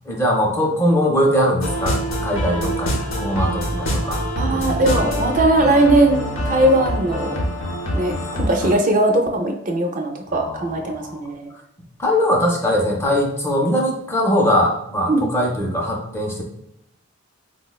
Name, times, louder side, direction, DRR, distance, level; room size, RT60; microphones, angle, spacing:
voice 1, 0.1-2.0 2.2-2.9 3.2-5.1 10.3-11.2 12.0-16.4, equal, 15° left, -1 dB, 0.5 m, -21 dB
sound 1, 1.6-8.7, equal, 85° left, 0.7 m, -25 dB
voice 2, 4.4-7.4 7.9-11.5 15.1-15.3, right 1 dB, 40° right, 3 dB, 0.4 m, -19 dB
4.2 x 2.0 x 2.2 m, 0.78 s
head